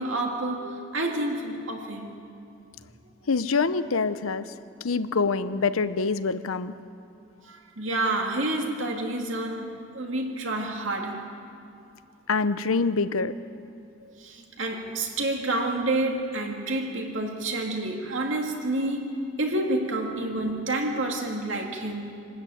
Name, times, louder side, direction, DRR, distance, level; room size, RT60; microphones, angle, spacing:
voice 1, 0.0-2.1 7.4-11.3 14.0-22.1, right 2 dB, 65° right, 1 dB, 2.5 m, -29 dB
voice 2, 3.3-4.5 4.8-6.7 12.3-13.3, left 4 dB, 85° left, 13 dB, 0.8 m, -25 dB
24.5 x 13.0 x 9.2 m, 2.5 s
head